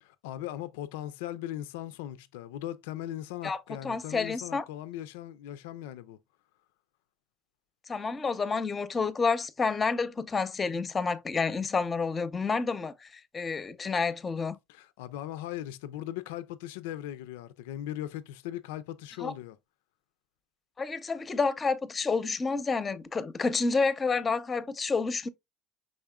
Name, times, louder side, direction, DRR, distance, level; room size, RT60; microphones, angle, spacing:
voice 1, 0.0-6.2 14.7-19.6, left 12 dB, 80° left, 0.3 m, -39 dB
voice 2, 3.4-4.6 7.9-13.1 13.3-14.6 19.2-19.3 20.8-25.3, left 4 dB, 25° left, 0.6 m, -29 dB
5.4 x 3.6 x 2.2 m
hypercardioid pair, 85°, 0 cm